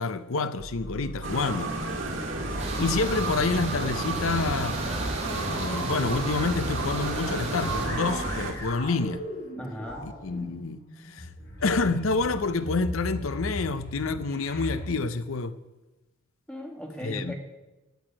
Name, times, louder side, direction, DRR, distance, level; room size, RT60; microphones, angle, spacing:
voice 1, 0.0-1.7 2.5-4.8 5.3-9.2 10.0-11.3 11.6-15.6 17.0-17.4, left 3 dB, 80° left, 0.7 m, -28 dB
sound 1, 0.6-14.9, equal, 50° left, 5.4 m, -38 dB
sound 2, 1.2-8.5, right 2 dB, 65° right, 2.2 m, -31 dB
sound 3, 2.6-7.9, right 2 dB, 35° right, 2.8 m, -37 dB
voice 2, 9.6-10.1 16.5-17.4, equal, 5° left, 1.9 m, -37 dB
16.0 x 6.4 x 8.8 m
head